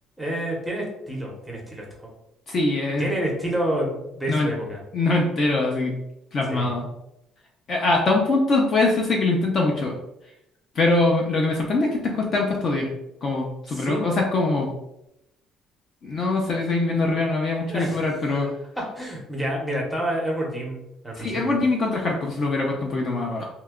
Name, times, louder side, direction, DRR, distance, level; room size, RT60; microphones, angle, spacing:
voice 1, 0.2-2.1 3.0-4.8 6.5-6.7 13.7-14.0 17.7-18.5 18.9-21.5, right 1 dB, ahead, -2 dB, 0.7 m, -29 dB
voice 2, 2.5-3.1 4.3-4.5 4.9-5.9 6.3-6.9 7.7-10.0 10.8-12.9 13.2-14.7 16.0-18.5 21.2-23.5, left 2 dB, 35° left, -1 dB, 0.4 m, -23 dB
2.7 x 2.2 x 3.5 m, 0.84 s
cardioid pair, 175°, 0 cm